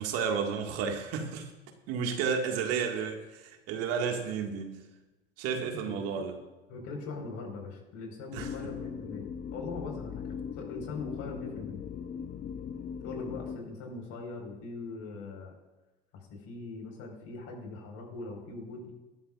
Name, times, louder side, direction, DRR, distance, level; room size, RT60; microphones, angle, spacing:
voice 1, 0.0-1.5 1.9-4.8 5.4-6.3 8.3-8.5, right 6 dB, 50° right, 3 dB, 2.0 m, -32 dB
voice 2, 5.5-6.2 6.7-11.8 13.0-15.5 16.1-18.9, left 3 dB, 50° left, 1 dB, 4.9 m, -41 dB
sound 1, 8.4-13.6, left 7 dB, 25° left, 0.5 m, -39 dB
20.0 x 13.0 x 2.5 m, 1.1 s
hypercardioid pair, 80°, 31 cm